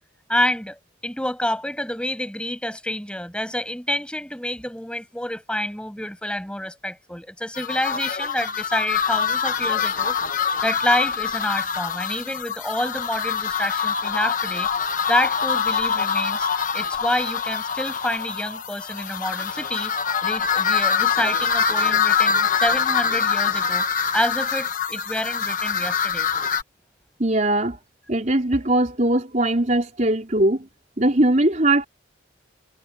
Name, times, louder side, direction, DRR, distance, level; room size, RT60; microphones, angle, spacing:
voice 1, 0.3-10.2 10.6-14.7 15.1-16.5 16.7-19.9 20.2-23.9 24.1-26.3, left 1 dB, 5° left, 7.9 m, -28 dB
sound 1, 7.6-26.6, left 6 dB, 45° left, 1.1 m, -24 dB
voice 2, 27.2-27.8 28.1-30.7 31.0-31.9, right 1 dB, 40° right, 4.4 m, -20 dB
head